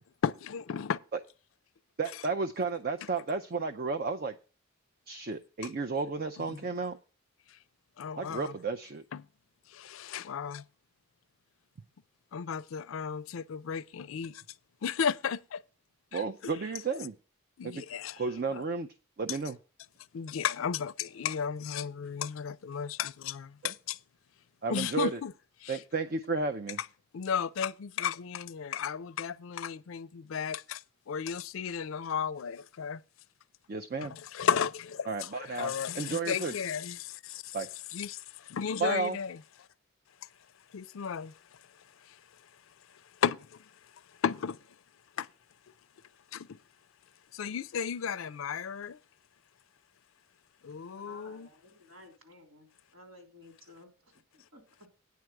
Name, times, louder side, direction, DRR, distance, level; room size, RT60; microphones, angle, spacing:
voice 1, 0.2-1.0 6.5-6.7 8.0-8.6 9.1-9.2 9.7-10.6 12.3-14.4 14.8-15.6 16.1-16.2 17.6-18.2 18.5-18.6 19.3-19.4 20.1-24.0 24.7-25.3 25.6-25.8 27.1-33.0 34.0-37.6 37.9-39.4 40.7-41.3 42.0-42.2 43.2-43.7 44.2-44.6 45.2-45.3 46.3-46.6 47.3-49.0 50.6-51.5, left 7 dB, 70° left, 0.4 m, -34 dB
voice 2, 2.0-4.4 5.1-7.0 8.2-9.0 16.1-17.1 17.6-17.8 18.2-18.9 19.2-19.6 24.6-25.2 25.7-26.8 33.7-34.2 35.1-36.5 37.5-37.7 38.8-39.2, right 4 dB, 45° right, 0.5 m, -32 dB
voice 3, 50.9-54.6, left 1 dB, 80° right, 3.4 m, -55 dB
9.4 x 4.6 x 7.6 m
head